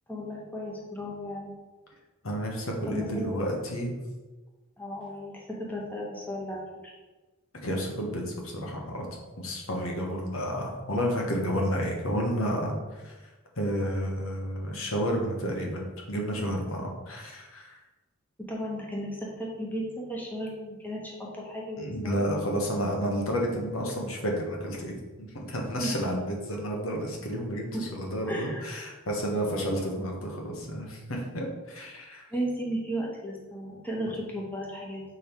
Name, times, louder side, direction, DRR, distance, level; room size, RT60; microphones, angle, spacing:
voice 1, 0.1-1.5 2.9-3.4 4.8-6.9 18.5-22.3 25.8-26.0 27.7-27.8 28.3-28.8 32.3-35.0, equal, 10° left, -3 dB, 1.0 m, -35 dB
voice 2, 2.2-3.9 7.6-9.1 9.4-13.1 13.6-17.8 21.8-32.2, equal, 85° left, 0 dB, 1.2 m, -31 dB
6.2 x 3.5 x 4.5 m, 1.2 s
head